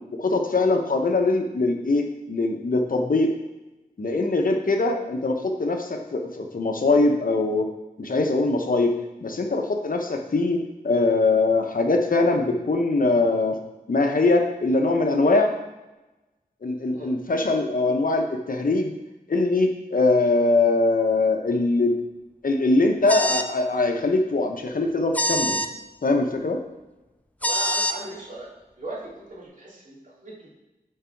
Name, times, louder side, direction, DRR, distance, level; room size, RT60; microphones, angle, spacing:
voice 1, 0.2-3.3 4.0-7.7 8.0-8.9 9.2-10.6 10.8-13.6 13.9-15.5 16.6-18.9 19.3-22.0 22.4-25.6 26.0-26.6, left 2 dB, 60° left, 3 dB, 0.9 m, -22 dB
sound 1, 23.1-23.5 25.1-25.7 27.4-27.9, left 1 dB, 10° left, 0.4 m, -24 dB
voice 2, 27.4-28.5 28.8-30.5, right 2 dB, 55° right, -6 dB, 2.5 m, -38 dB
6.6 x 4.7 x 4.5 m, 1.0 s
wide cardioid pair, 70°, 16 cm